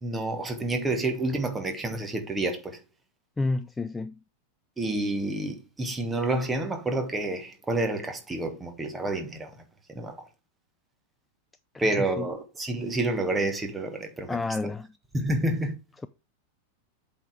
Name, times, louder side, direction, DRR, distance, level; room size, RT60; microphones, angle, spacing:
voice 1, 0.0-2.8 4.8-9.6 9.9-10.1 11.8-14.4 15.1-15.7, right 2 dB, 15° right, 1.6 m, -29 dB
voice 2, 3.4-4.2 11.7-11.8 12.2-12.3 14.3-14.9, left 3 dB, 10° left, 0.3 m, -30 dB
8.1 x 4.2 x 4.8 m
figure-of-eight pair, 90°, 0 cm